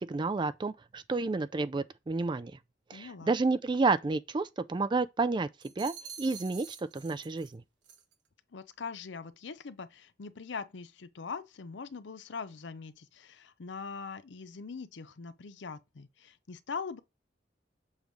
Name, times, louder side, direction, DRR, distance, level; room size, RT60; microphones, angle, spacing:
voice 1, 0.0-2.5 2.9-5.5 5.8-7.6, right 3 dB, 25° right, 0.3 m, -30 dB
voice 2, 2.9-3.4 8.5-17.0, left 5 dB, 80° left, 0.6 m, -42 dB
sound 1, 5.6-7.5 7.8-8.1, right 7 dB, 80° right, 1.2 m, -47 dB
7.2 x 3.1 x 5.1 m
head